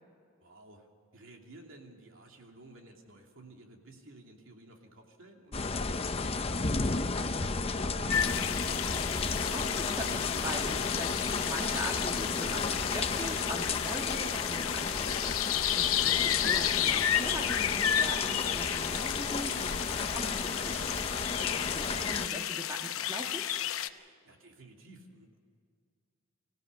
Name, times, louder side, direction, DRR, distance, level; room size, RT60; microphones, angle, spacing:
voice 1, 0.4-5.7 6.2-8.9 23.8-25.4, right 1 dB, 70° right, 1 dB, 2.8 m, -53 dB
sound 1, 5.5-22.3, left 4 dB, 30° left, 0.6 m, -33 dB
sound 2, 8.1-23.9, left 10 dB, 90° left, 0.8 m, -32 dB
voice 2, 9.3-20.7 21.0-23.4, equal, 15° right, 2 dB, 1.7 m, -41 dB
25.5 x 16.0 x 6.8 m, 2.2 s
head